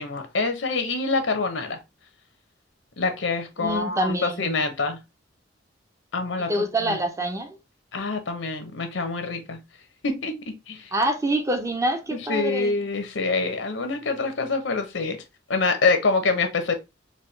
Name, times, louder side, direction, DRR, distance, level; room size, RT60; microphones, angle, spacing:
voice 1, 0.0-1.8 3.0-5.0 6.1-7.0 7.9-9.6 10.0-10.9 12.1-15.2 15.5-16.7, left 3 dB, 75° left, 0.8 m, -26 dB
voice 2, 3.6-4.5 6.5-7.6 10.9-12.7, right 1 dB, 15° right, 0.6 m, -26 dB
4.2 x 2.3 x 3.2 m
head